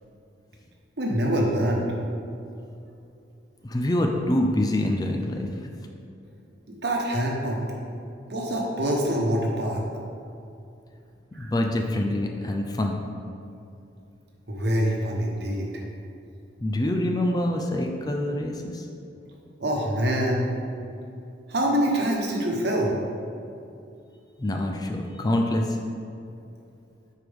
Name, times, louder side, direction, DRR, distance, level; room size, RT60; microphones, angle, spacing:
voice 1, 1.0-1.9 6.7-7.6 8.3-9.8 11.3-11.5 14.5-15.8 19.6-20.5 21.5-22.9, equal, 60° right, -1 dB, 1.1 m, -25 dB
voice 2, 3.6-5.5 11.4-13.0 16.6-18.9 24.4-25.8, left 1 dB, 20° left, 2 dB, 0.4 m, -25 dB
9.9 x 4.6 x 3.5 m, 2.6 s
head